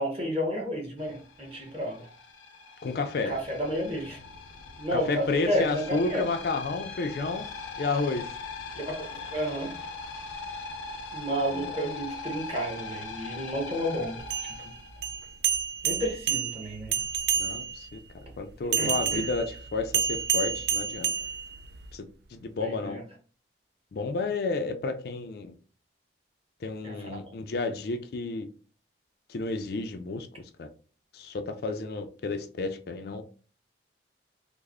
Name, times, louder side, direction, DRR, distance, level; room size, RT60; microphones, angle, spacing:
voice 1, 0.0-2.1 3.3-4.2 4.8-6.2 8.9-9.7 11.1-14.5 15.8-16.9 18.8-19.3 22.6-23.0 26.8-27.1, equal, 30° right, 1.0 m, -31 dB
sound 1, 1.0-15.5, left 3 dB, 90° left, 0.6 m, -41 dB
voice 2, 2.8-3.4 4.9-7.5 7.8-8.3 11.5-11.7 17.3-18.0 18.4-21.1 21.9-22.1 22.3-23.0 23.9-25.5 26.6-28.5 29.3-30.7 31.1-33.2, left 3 dB, 55° left, 0.4 m, -31 dB
sound 2, 14.2-17.9 18.7-21.9, right 7 dB, 60° right, 0.3 m, -29 dB
3.2 x 2.0 x 3.5 m
head